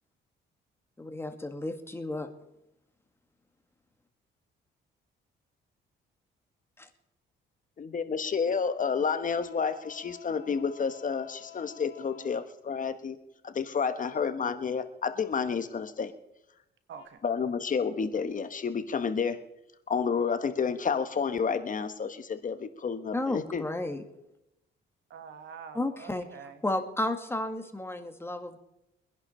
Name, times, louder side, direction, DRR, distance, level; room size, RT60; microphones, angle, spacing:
voice 1, 1.0-2.3 6.8-6.9 23.1-24.0 25.7-26.3 26.6-28.6, left 2 dB, 10° left, 6 dB, 1.8 m, -32 dB
voice 2, 7.8-13.2 13.4-16.1 17.2-19.4 19.9-23.6, left 6 dB, 40° left, 10 dB, 1.2 m, -30 dB
sound 1, 9.2-12.4 17.0-17.1, left 12 dB, 80° left, 2.6 m, -50 dB
voice 3, 14.2-14.6 16.9-17.2 25.1-26.6, right 7 dB, 70° right, 9 dB, 1.6 m, -47 dB
23.5 x 10.5 x 4.3 m, 0.89 s
cardioid pair, 90°, 20 cm